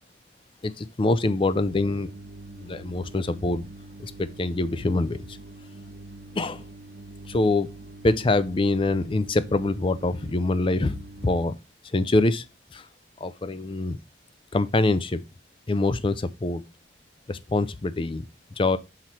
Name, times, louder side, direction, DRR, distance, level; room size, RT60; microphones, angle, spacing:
voice 1, 0.6-2.1 2.6-3.6 4.0-5.4 6.4-6.6 7.3-7.7 8.0-11.5 11.9-12.4 12.7-12.9 13.2-14.0 14.5-15.2 15.7-16.6 17.3-18.3 18.6-18.8, left 2 dB, 25° left, 0.4 m, -25 dB
sound 1, 1.5-11.5, right 2 dB, 55° right, 0.6 m, -44 dB
5.9 x 4.6 x 4.3 m
head